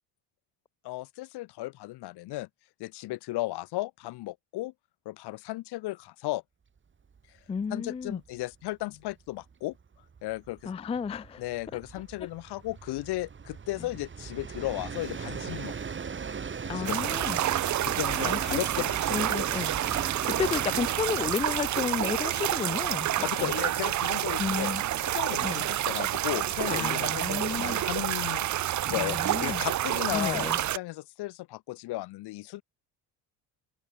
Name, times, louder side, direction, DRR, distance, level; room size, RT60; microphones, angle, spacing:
voice 1, 0.8-2.5 2.8-4.7 5.0-6.4 7.7-9.8 10.2-10.7 11.4-15.7 16.7-17.2 17.8-19.2 23.2-24.7 25.0-28.5 28.9-32.6, left 18 dB, 70° left, 1.3 m, -35 dB
Train, 7.1-7.2 7.6-7.7 8.0-25.4, right 6 dB, 30° right, 2.8 m, -40 dB
voice 2, 7.5-8.2 10.7-11.4 16.7-17.4 18.2-18.6 19.1-19.7 20.3-23.5 24.4-24.8 25.4-25.6 26.7-27.8 29.0-29.6 30.1-30.6, left 6 dB, 15° left, 0.4 m, -32 dB
sound 1, 16.9-30.8, right 13 dB, 45° right, 0.7 m, -29 dB
cardioid pair, 110°, 41 cm